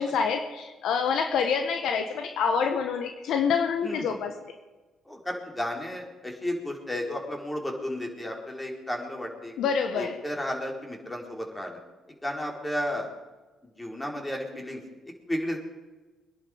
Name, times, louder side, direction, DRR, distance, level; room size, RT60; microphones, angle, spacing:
voice 1, 0.0-4.6 9.6-10.2, left 6 dB, 70° left, 6 dB, 1.2 m, -27 dB
voice 2, 3.8-4.2 5.1-9.6 10.0-11.8 12.2-13.1 13.8-15.7, left 1 dB, 15° left, 1 dB, 4.3 m, -33 dB
23.5 x 10.5 x 5.1 m, 1.2 s
hypercardioid pair, 55°, 0 cm